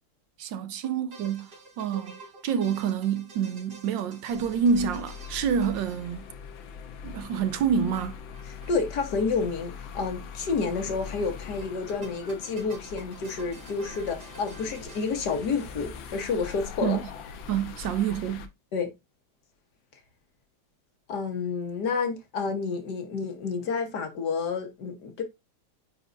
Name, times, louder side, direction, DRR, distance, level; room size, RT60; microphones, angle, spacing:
voice 1, 0.4-1.5 1.8-2.2 2.4-6.3 7.0-8.2 16.8-17.0 17.5-18.5, right 7 dB, 75° right, 1.3 m, -27 dB
sound 1, 0.8-6.6 7.9-8.8 9.0-9.1 9.3-9.4 11.6-16.1, right 3 dB, 55° right, 2.8 m, -49 dB
sound 2, 4.3-18.5, left 6 dB, 85° left, 1.6 m, -42 dB
voice 2, 8.7-17.0 18.7-18.9 21.1-25.2, left 4 dB, 60° left, 1.6 m, -29 dB
9.1 x 4.1 x 2.5 m
omnidirectional pair, 2.1 m